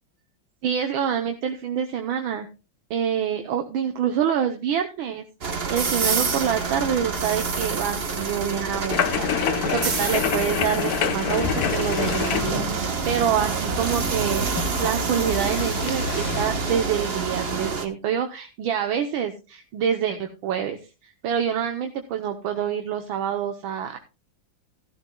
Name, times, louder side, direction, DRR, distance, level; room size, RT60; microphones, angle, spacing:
voice 1, 0.6-2.5 2.9-14.5 14.8-20.8 21.2-24.0, right 8 dB, 80° right, 6 dB, 1.7 m, -26 dB
sound 1, 5.4-17.9, right 4 dB, 35° right, 1.1 m, -27 dB
sound 2, 8.9-16.4, left 9 dB, 60° left, 1.0 m, -28 dB
14.0 x 13.0 x 2.3 m, 0.29 s
omnidirectional pair, 2.2 m